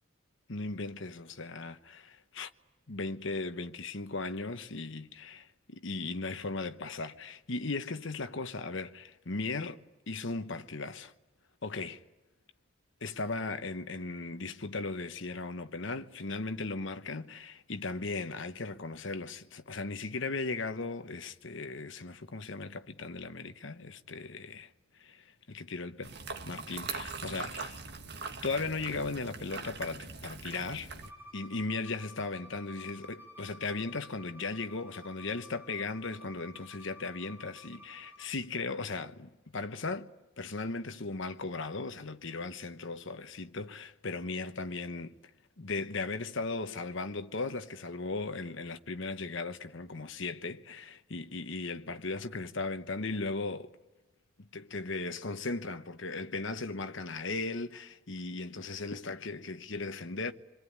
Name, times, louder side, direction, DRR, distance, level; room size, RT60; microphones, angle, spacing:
voice 1, 0.5-2.5 2.9-11.1 11.6-12.0 13.0-26.1 26.5-27.8 28.4-30.9 31.3-40.1 40.4-45.1 45.6-53.7 54.4-60.3, left 3 dB, 60° left, 1.1 m, -37 dB
sound 1, 26.0-31.1, right 4 dB, 50° right, 1.8 m, -41 dB
Bowed string instrument, 31.0-38.3, left 1 dB, 10° right, 2.5 m, -52 dB
28.0 x 22.5 x 9.5 m
head